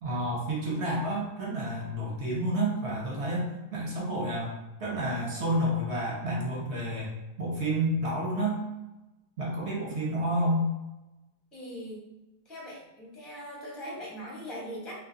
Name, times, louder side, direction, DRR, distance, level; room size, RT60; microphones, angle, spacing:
voice 1, 0.0-4.5 4.8-7.1 7.4-8.6 9.4-10.7, right 1 dB, 50° right, -4 dB, 0.9 m, -30 dB
voice 2, 11.5-12.1 12.5-14.9, equal, ahead, -6 dB, 0.5 m, -41 dB
2.7 x 2.4 x 3.7 m, 1.0 s
omnidirectional pair, 1.8 m